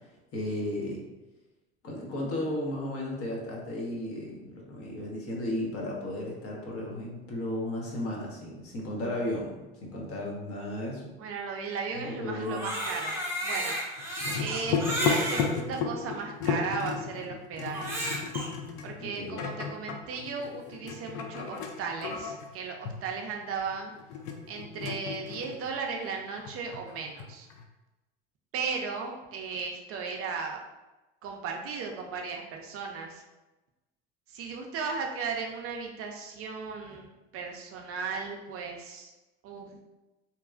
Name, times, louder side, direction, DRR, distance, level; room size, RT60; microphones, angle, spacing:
voice 1, 0.3-1.0 1.8-11.1 11.9-12.7 19.0-19.4, left 1 dB, 45° left, -2 dB, 0.9 m, -34 dB
voice 2, 11.2-13.8 14.4-18.0 18.8-23.9 24.5-27.5 28.5-30.6 31.2-33.2 34.3-37.1 37.3-39.1 39.4-39.7, right 5 dB, 45° right, 2 dB, 0.4 m, -36 dB
Crying sobbing, 12.4-15.5 16.2-16.3 17.6-18.5, equal, 10° right, 0.7 m, -32 dB
sound 1, 14.0-25.9 26.2-27.6, left 6 dB, 60° left, 0.5 m, -34 dB
2.8 x 2.2 x 2.4 m, 1.1 s
hypercardioid pair, 85°, 33 cm